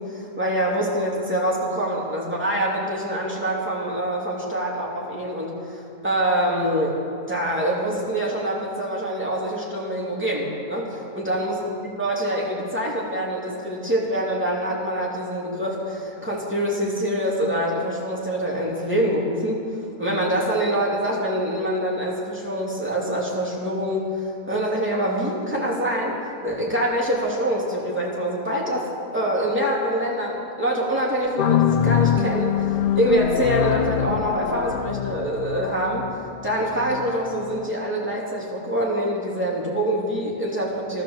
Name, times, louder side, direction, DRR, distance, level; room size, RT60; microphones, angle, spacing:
voice 1, 0.0-7.0 7.3-11.6 12.0-19.7 20.0-26.1 26.4-36.1 36.4-41.0, right 1 dB, 10° right, -4 dB, 2.9 m, -25 dB
sound 1, 31.4-37.7, left 9 dB, 75° left, 0.5 m, -24 dB
14.5 x 13.0 x 7.3 m, 2.7 s
omnidirectional pair, 1.4 m